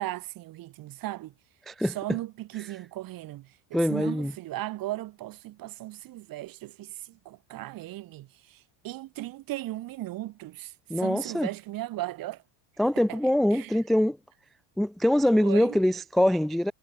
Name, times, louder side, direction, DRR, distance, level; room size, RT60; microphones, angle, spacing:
voice 1, 0.0-1.3 1.8-12.4 13.0-13.2 13.5-13.8 15.3-15.8, right 16 dB, 45° right, 2.5 m, -37 dB
voice 2, 1.7-2.0 3.7-4.3 10.9-11.5 12.8-14.2 14.8-16.7, left 1 dB, ahead, 0.4 m, -24 dB
cardioid pair, 155°, 47 cm